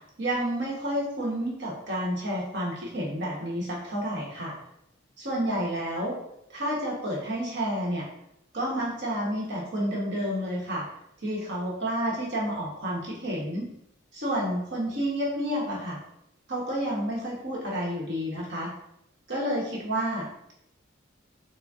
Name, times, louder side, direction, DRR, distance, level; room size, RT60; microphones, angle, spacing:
voice 1, 0.2-4.6 5.2-6.2 6.5-8.1 8.5-10.8 11.2-13.7 14.1-16.0 16.5-18.7 19.3-20.5, equal, 55° right, -3 dB, 1.1 m, -30 dB
3.9 x 2.2 x 3.5 m, 0.76 s
head